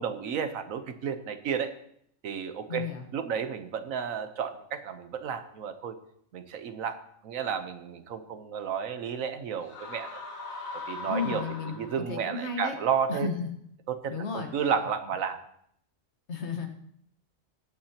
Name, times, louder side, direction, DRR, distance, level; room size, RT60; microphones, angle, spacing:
voice 1, 0.0-1.7 2.2-6.0 6.3-10.2 10.7-11.4 11.7-13.3 13.9-15.4, right 7 dB, 90° right, 9 dB, 1.3 m, -32 dB
voice 2, 2.7-3.0 11.1-12.8 13.1-13.5 14.1-14.5 16.3-16.7, left 4 dB, 55° left, 4 dB, 1.6 m, -33 dB
sound 1, 9.6-12.3, left 3 dB, 90° left, 2.1 m, -40 dB
20.0 x 8.8 x 2.9 m, 0.69 s
omnidirectional pair, 1.4 m